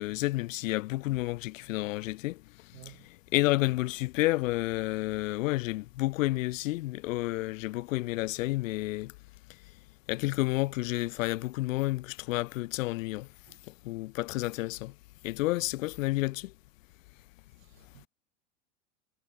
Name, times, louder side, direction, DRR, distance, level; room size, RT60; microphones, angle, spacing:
voice 1, 0.0-2.4 2.9-3.0 3.3-9.1 10.1-13.3 13.7-14.9 15.2-16.5, left 19 dB, 80° left, 0.6 m, -30 dB
voice 2, 2.7-3.1 13.5-13.6 17.6-18.1, right 15 dB, 80° right, 1.9 m, -53 dB
hypercardioid pair, 110°, 39 cm